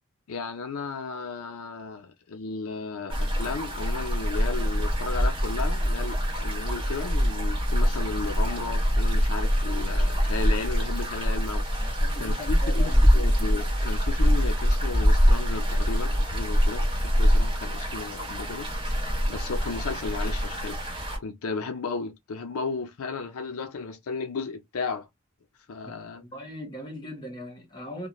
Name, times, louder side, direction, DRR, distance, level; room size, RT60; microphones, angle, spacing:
voice 1, 0.3-19.0 19.3-25.1 25.7-26.2, left 4 dB, 80° left, 0.5 m, -34 dB
sound 1, 3.1-21.2, equal, 25° right, 1.2 m, -24 dB
voice 2, 11.8-13.1 25.8-28.1, left 1 dB, 20° left, 1.0 m, -40 dB
2.4 x 2.2 x 2.9 m
head